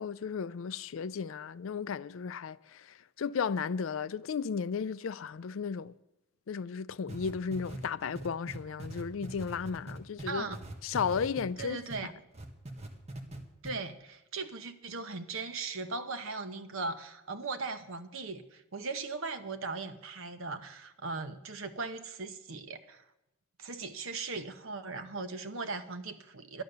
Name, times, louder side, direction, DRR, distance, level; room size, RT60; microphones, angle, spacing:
voice 1, 0.0-5.9 6.5-10.5 10.8-11.8, left 6 dB, 65° left, 0.4 m, -34 dB
sound 1, 7.1-12.0 12.3-13.4 13.6-13.7, right 1 dB, 30° right, 1.5 m, -42 dB
voice 2, 10.3-10.6 11.6-12.1 13.6-23.0 23.6-26.6, right 3 dB, 70° right, 1.0 m, -38 dB
11.5 x 11.0 x 6.7 m
head